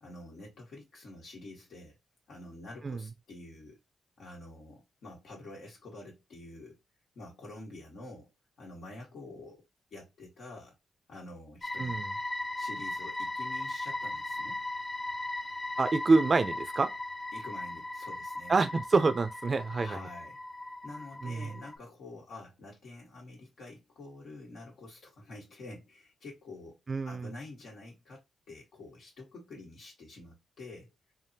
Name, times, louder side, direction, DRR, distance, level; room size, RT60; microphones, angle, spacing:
voice 1, 0.0-2.0 2.3-3.8 4.2-6.8 7.1-8.3 8.6-9.7 9.9-10.7 11.1-12.0 12.6-14.6 17.3-18.6 19.8-20.4 20.8-26.8 27.0-30.9, left 2 dB, 75° left, 1.3 m, -48 dB
sound 1, 11.6-21.8, left 2 dB, 20° left, 0.5 m, -38 dB
voice 2, 11.8-12.1 15.8-16.9 18.5-20.0 21.2-21.5 26.9-27.3, right 3 dB, 40° right, 0.5 m, -27 dB
3.4 x 2.0 x 2.8 m
cardioid pair, 80°, 0 cm